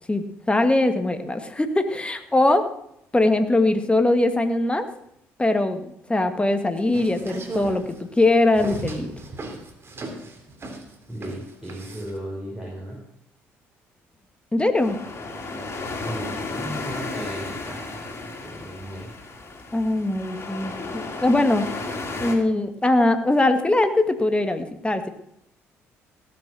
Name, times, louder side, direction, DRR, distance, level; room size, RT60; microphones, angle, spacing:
voice 1, 0.1-2.6 3.1-4.9 5.4-9.1 14.5-15.0 19.7-21.6 22.2-25.1, left 2 dB, 15° left, 8 dB, 2.1 m, -21 dB
sound 1, 6.8-12.2, right 2 dB, 40° right, 3.3 m, -36 dB
voice 2, 11.1-13.0 16.0-19.2, equal, 5° right, -5 dB, 5.9 m, -35 dB
Waves Bram Meindersma, 14.8-22.4, left 3 dB, 40° left, 3.6 m, -34 dB
17.5 x 6.7 x 6.3 m, 0.76 s
hypercardioid pair, 55°, 6 cm